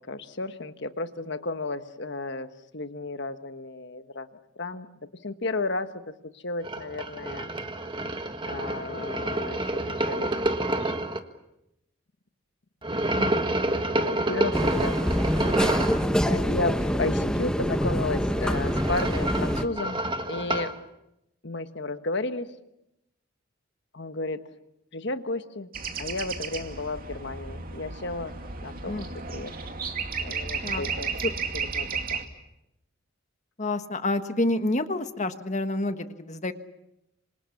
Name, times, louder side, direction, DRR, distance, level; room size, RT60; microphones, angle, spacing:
voice 1, 0.1-4.3 4.6-4.9 5.2-6.0 6.3-7.5 8.4-10.5 10.8-11.1 13.2-13.3 13.6-15.6 16.2-20.7 21.4-22.5 23.9-24.4 24.9-25.7 26.0-28.3 28.6-29.0 29.3-29.5 30.2-32.3, left 2 dB, 60° left, 9 dB, 1.4 m, -33 dB
sound 1, 6.6-11.2 12.8-16.1 18.2-20.8, right 1 dB, 25° right, 1.5 m, -29 dB
voice 2, 13.0-13.5 28.8-29.1 30.6-30.8 31.2-31.3 33.6-36.5, left 2 dB, 35° left, 9 dB, 1.4 m, -28 dB
sound 2, 14.5-19.7, equal, 5° left, 1.1 m, -25 dB
sound 3, 25.7-32.2, right 5 dB, 45° right, 2.4 m, -33 dB
27.0 x 26.5 x 7.2 m, 0.87 s
head